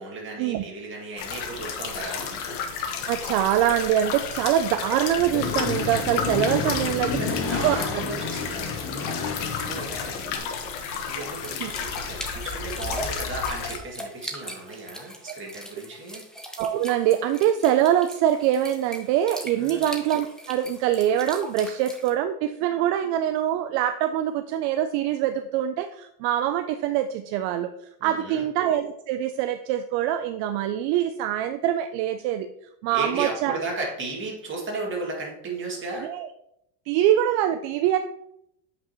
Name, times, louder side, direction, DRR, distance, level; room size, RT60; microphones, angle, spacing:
voice 1, 0.0-2.4 6.8-16.2 19.6-19.9 28.0-28.5 32.9-36.1, right 3 dB, 25° right, -2 dB, 2.2 m, -35 dB
sound 1, 1.2-13.8, left 6 dB, 60° left, 1.2 m, -32 dB
voice 2, 3.0-7.2 7.6-7.8 11.6-11.7 15.3-15.4 16.6-27.7 28.0-32.5 32.8-33.6 36.0-36.3 36.9-38.0, right 11 dB, 65° right, 9 dB, 0.5 m, -24 dB
Accelerating revving vroom, 5.2-10.4, left 5 dB, 30° left, 0.8 m, -30 dB
sound 2, 11.4-22.1, equal, ahead, 0.6 m, -41 dB
8.2 x 5.2 x 3.0 m, 0.77 s
cardioid pair, 140°, 47 cm